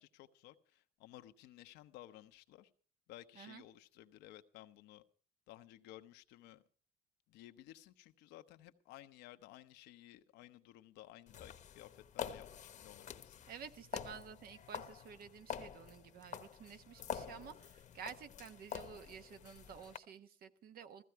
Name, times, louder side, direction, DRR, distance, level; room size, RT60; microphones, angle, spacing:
voice 1, 0.0-2.7 3.1-5.0 5.5-6.6 7.3-13.4, left 14 dB, 90° left, 1.0 m, -56 dB
sound 1, 11.3-20.0, left 8 dB, 45° left, 1.0 m, -47 dB
voice 2, 13.5-21.0, right 7 dB, 65° right, 1.2 m, -52 dB
15.0 x 15.0 x 4.6 m
cardioid pair, 110°, 17 cm